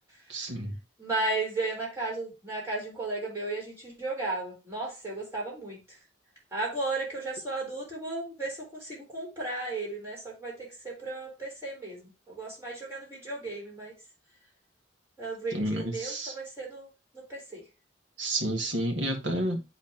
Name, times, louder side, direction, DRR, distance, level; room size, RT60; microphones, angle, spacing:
voice 1, 0.3-0.8 15.5-16.4 18.2-19.6, right 1 dB, 75° right, 4 dB, 2.0 m, -30 dB
voice 2, 1.0-5.8 6.5-13.9 15.2-16.9 17.1-17.6, right 2 dB, 15° right, -4 dB, 4.2 m, -34 dB
11.0 x 3.9 x 2.9 m, 0.27 s
head